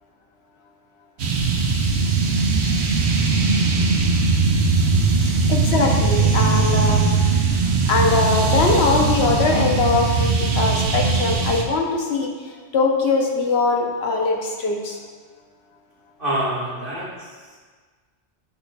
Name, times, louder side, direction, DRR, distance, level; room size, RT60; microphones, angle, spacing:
sound 1, 1.2-11.6, right 4 dB, 75° right, 1.0 m, -19 dB
voice 1, 5.2-7.1 7.9-15.0, left 3 dB, 70° left, 1 dB, 1.0 m, -21 dB
voice 2, 16.2-17.6, right 1 dB, 55° right, -7 dB, 1.9 m, -27 dB
8.0 x 6.3 x 2.3 m, 1.5 s
omnidirectional pair, 1.1 m